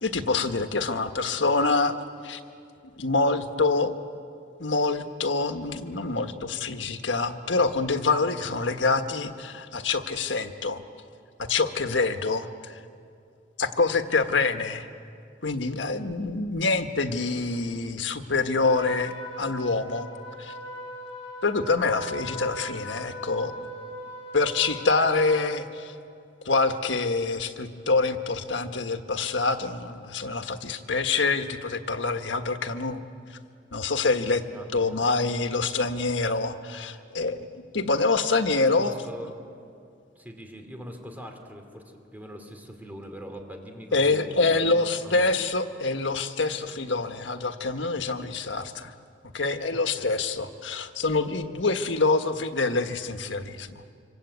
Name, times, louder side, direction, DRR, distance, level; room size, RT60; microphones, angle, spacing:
voice 1, 0.0-2.0 2.2-2.4 3.0-4.0 4.6-10.8 11.4-12.8 13.6-14.9 15.4-20.1 20.4-20.5 21.4-23.7 24.3-25.9 26.4-33.0 33.7-34.4 34.7-39.0 43.9-48.9 49.3-53.8, left 3 dB, 90° left, 7 dB, 1.5 m, -26 dB
Trumpet, 18.6-25.5, equal, 30° left, 6.8 m, -39 dB
voice 2, 34.5-34.9 37.7-37.8 38.8-39.3 40.1-45.3 50.0-50.1, equal, 10° right, 4 dB, 2.9 m, -42 dB
26.0 x 25.5 x 8.4 m, 2.4 s
head